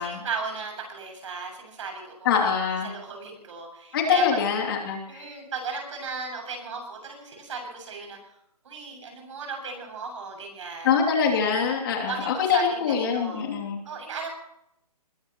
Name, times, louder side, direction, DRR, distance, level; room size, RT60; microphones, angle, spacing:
voice 1, 0.0-2.5 2.8-4.4 5.1-8.4 8.6-10.9 11.9-13.4 13.8-14.3, right 4 dB, 50° right, 3 dB, 7.7 m, -36 dB
voice 2, 2.2-2.9 3.9-5.3 10.8-13.8, left 6 dB, 35° left, 0 dB, 3.2 m, -24 dB
21.5 x 18.5 x 3.2 m, 0.76 s
hypercardioid pair, 160°, 20 cm